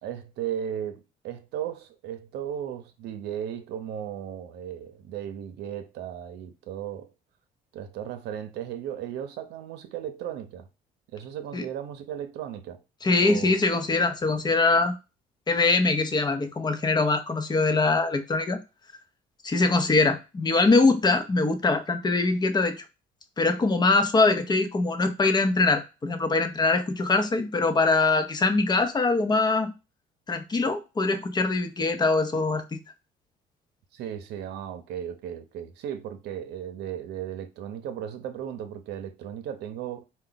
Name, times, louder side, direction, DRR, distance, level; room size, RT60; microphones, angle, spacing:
voice 1, 0.0-7.1 7.7-10.7 11.1-12.8 13.2-13.5 33.9-40.0, right 9 dB, 80° right, 0.7 m, -36 dB
voice 2, 13.0-14.9 15.5-18.6 19.4-22.7 23.4-29.7 30.3-32.8, left 3 dB, 25° left, 0.7 m, -23 dB
4.5 x 2.3 x 3.9 m
cardioid pair, 110°, 17 cm